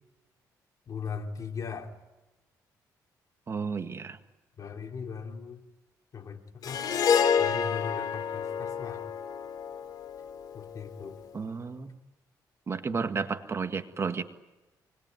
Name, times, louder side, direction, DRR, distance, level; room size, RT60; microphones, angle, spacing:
voice 1, 0.9-1.9 4.6-5.6 6.1-6.8 7.4-9.0 10.5-11.2 12.9-13.0, left 6 dB, 50° left, 4 dB, 3.0 m, -39 dB
voice 2, 3.5-4.2 11.3-11.9 12.7-14.2, right 5 dB, 35° right, 8 dB, 1.8 m, -32 dB
Harp, 6.6-11.1, left 7 dB, 65° left, 2.7 m, -29 dB
25.5 x 20.5 x 9.3 m, 1.1 s
cardioid pair, 90°, 7 cm